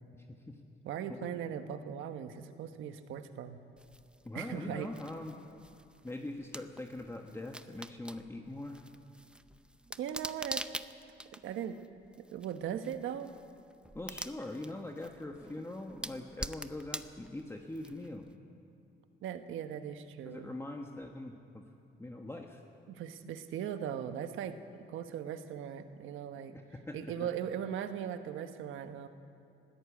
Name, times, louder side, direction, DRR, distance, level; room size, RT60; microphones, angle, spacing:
voice 1, 0.8-3.6 4.3-4.9 10.0-10.7 11.3-11.8 12.2-13.3 19.2-20.5 22.9-26.5 26.9-29.1, right 9 dB, 85° right, 9 dB, 1.2 m, -39 dB
sound 1, 3.8-18.3, right 1 dB, 5° right, 0.7 m, -46 dB
voice 2, 4.2-5.4 6.0-8.9 13.9-18.2 20.2-21.6 22.0-22.6 26.5-27.3, left 2 dB, 15° left, 2 dB, 1.4 m, -42 dB
21.0 x 14.5 x 8.5 m, 2.7 s
cardioid pair, 90°, 20 cm